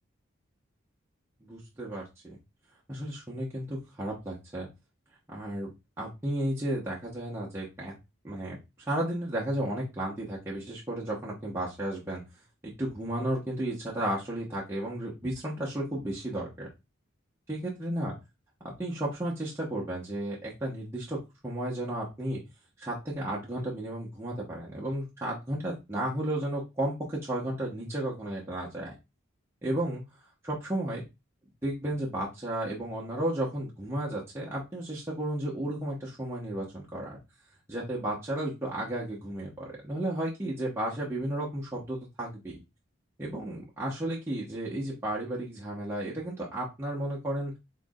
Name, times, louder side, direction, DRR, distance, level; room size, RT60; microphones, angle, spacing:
voice 1, 1.4-2.4 2.9-4.7 5.3-5.7 6.0-7.9 8.2-8.6 8.9-12.2 12.8-16.7 17.5-18.1 18.8-22.4 22.8-28.9 29.6-30.0 30.4-31.0 31.6-37.2 37.7-42.6 43.2-47.5, right 1 dB, 10° right, -6 dB, 1.0 m, -33 dB
4.7 x 3.8 x 2.4 m, 0.24 s
head